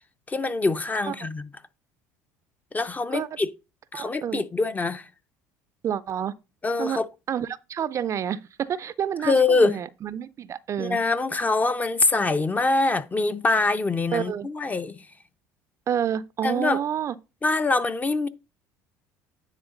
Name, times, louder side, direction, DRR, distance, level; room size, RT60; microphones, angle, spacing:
voice 1, 0.3-1.5 2.7-3.5 3.9-5.1 6.6-7.1 9.2-9.8 10.8-15.1 16.4-16.8 17.4-18.3, left 3 dB, 20° left, 0.6 m, -24 dB
voice 2, 3.9-4.4 5.8-6.3 6.8-7.0 7.3-11.0 14.1-14.5 15.9-17.2, right 9 dB, 40° right, 0.4 m, -29 dB
9.7 x 3.4 x 3.8 m
supercardioid pair, 85°, 8 cm